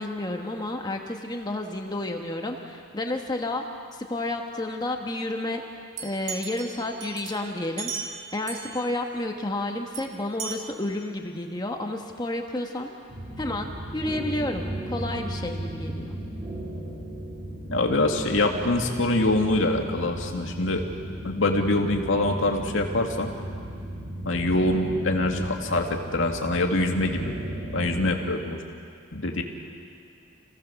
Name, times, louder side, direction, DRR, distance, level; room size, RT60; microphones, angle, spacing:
voice 1, 0.0-3.6 3.9-5.6 6.0-7.9 8.3-12.9 13.4-16.2, left 1 dB, 20° left, 3 dB, 1.3 m, -31 dB
sound 1, 6.0-8.9 9.9-10.0 10.4-10.6, right 6 dB, 70° right, 2.5 m, -36 dB
sound 2, 13.1-28.1, right 1 dB, 50° right, 7.9 m, -35 dB
voice 2, 17.7-20.8 21.2-23.3 24.3-27.3 27.7-28.6 29.1-29.4, left 2 dB, 70° left, 2 dB, 2.2 m, -24 dB
28.5 x 17.0 x 7.0 m, 2.4 s
head